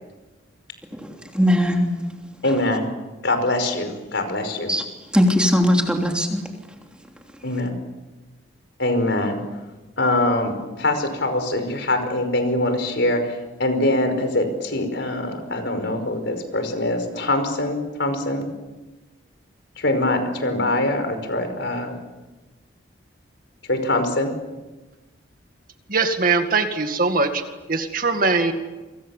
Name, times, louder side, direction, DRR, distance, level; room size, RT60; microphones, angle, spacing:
voice 1, 0.9-1.9 4.7-4.8 5.1-6.4, equal, 5° right, 2 dB, 3.2 m, -19 dB
voice 2, 2.4-2.9 3.2-4.7 7.4-7.7 8.8-9.4 10.0-13.2 13.6-18.4 19.8-22.0 23.7-24.3, left 1 dB, 60° left, 7 dB, 5.2 m, -23 dB
voice 3, 25.9-27.4 27.7-28.5, right 3 dB, 45° right, 6 dB, 2.1 m, -21 dB
29.0 x 25.5 x 7.4 m, 1.2 s
head